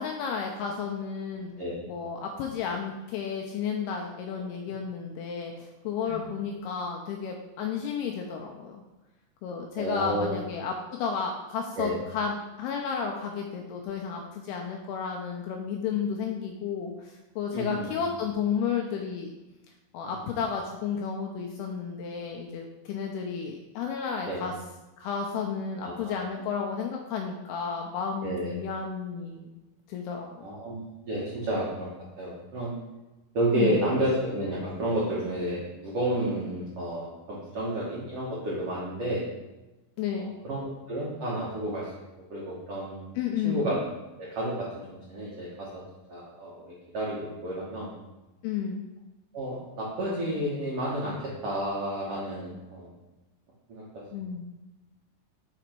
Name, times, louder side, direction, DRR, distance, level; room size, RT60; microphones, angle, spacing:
voice 1, 0.0-1.5 1.9-8.8 9.4-19.3 19.9-24.5 25.0-29.5 29.9-30.3 33.5-33.8 40.0-40.4 43.2-43.7 48.4-48.9 54.1-54.5, left 6 dB, 85° left, 2 dB, 2.3 m, -32 dB
voice 2, 9.8-10.4 11.8-12.0 17.5-17.9 20.0-20.1 24.3-24.4 26.0-26.2 28.2-28.5 30.4-30.8 31.1-31.9 32.2-32.7 33.3-39.2 40.2-40.6 40.9-41.8 42.3-43.1 43.4-43.7 44.2-45.8 46.1-47.9 49.3-51.2 51.4-52.9 53.7-54.0, right 1 dB, 80° right, -7 dB, 1.3 m, -31 dB
6.3 x 5.0 x 4.5 m, 1.1 s
omnidirectional pair, 5.0 m